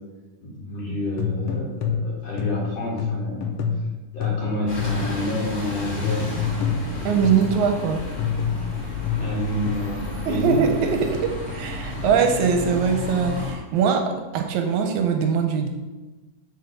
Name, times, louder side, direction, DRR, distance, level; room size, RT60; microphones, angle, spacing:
voice 1, 0.4-3.5 4.1-6.5 9.2-10.6 12.6-12.7, left 1 dB, 60° left, -6 dB, 2.6 m, -29 dB
sound 1, 1.2-5.2 6.0-7.6 8.2-9.7, left 6 dB, 90° left, 1.3 m, -27 dB
Bus, 4.7-13.5, left 3 dB, 15° left, 1.7 m, -32 dB
voice 2, 7.1-8.0 10.3-15.7, right 6 dB, 80° right, 4 dB, 1.9 m, -22 dB
6.9 x 3.9 x 6.5 m, 1.2 s
omnidirectional pair, 3.7 m